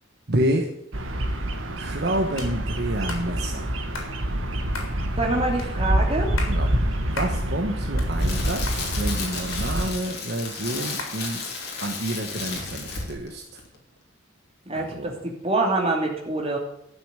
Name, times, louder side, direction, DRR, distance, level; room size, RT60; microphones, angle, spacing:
voice 1, 0.3-0.7 1.7-3.7 6.5-11.4 11.8-13.6 14.7-15.1, right 1 dB, 55° right, 3 dB, 1.2 m, -29 dB
Bird vocalization bird call bird song, 0.9-9.9, right 1 dB, 70° right, 1.8 m, -27 dB
sound 1, 2.4-2.5 3.1-3.3 3.9-4.1 4.7-4.9 5.6-5.7 6.2-6.6 7.2-7.4 7.8-8.4 8.7-8.8 9.5-10.1 11.0-11.2, left 3 dB, 75° left, 3.7 m, -35 dB
voice 2, 5.2-6.3 14.7-16.6, right 2 dB, 30° right, 1 dB, 2.7 m, -25 dB
Crackle, 7.8-13.3 13.6-13.8, left 4 dB, 55° left, 3.4 m, -33 dB
12.5 x 7.0 x 8.9 m, 0.78 s
head